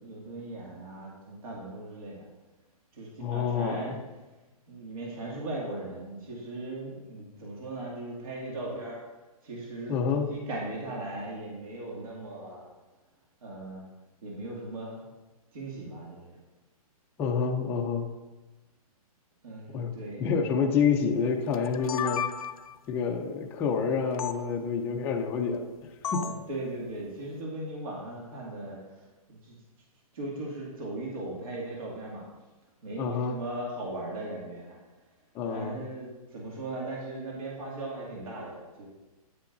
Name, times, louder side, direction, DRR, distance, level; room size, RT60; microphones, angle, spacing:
voice 1, 0.0-2.3 2.9-4.0 4.7-9.0 9.4-12.7 13.4-13.9 14.2-15.1 15.5-16.4 19.4-20.2 26.1-29.5 30.1-32.2 32.8-34.8 35.5-38.9, right 2 dB, 70° right, -3 dB, 2.3 m, -38 dB
voice 2, 3.2-3.9 9.9-10.3 17.2-18.1 19.7-19.9 20.2-22.2 22.9-26.3 33.0-33.4 35.3-35.8, left 6 dB, 10° left, 0 dB, 0.4 m, -28 dB
sound 1, 21.5-22.8 24.2-24.4 26.0-26.5, left 8 dB, 70° left, 0.5 m, -33 dB
9.4 x 8.2 x 2.6 m, 1.1 s
hypercardioid pair, 160°, 19 cm